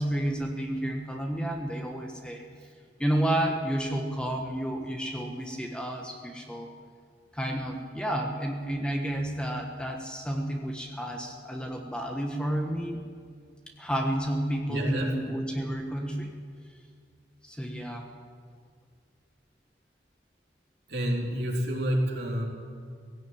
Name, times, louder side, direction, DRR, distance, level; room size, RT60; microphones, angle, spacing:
voice 1, 0.0-2.5 3.0-6.7 7.3-13.0 13.8-16.3 17.4-18.1, right 1 dB, 5° left, 2 dB, 1.4 m, -31 dB
voice 2, 14.7-15.1 20.9-22.5, equal, 65° right, -2 dB, 4.0 m, -28 dB
17.5 x 16.5 x 9.2 m, 2.1 s
head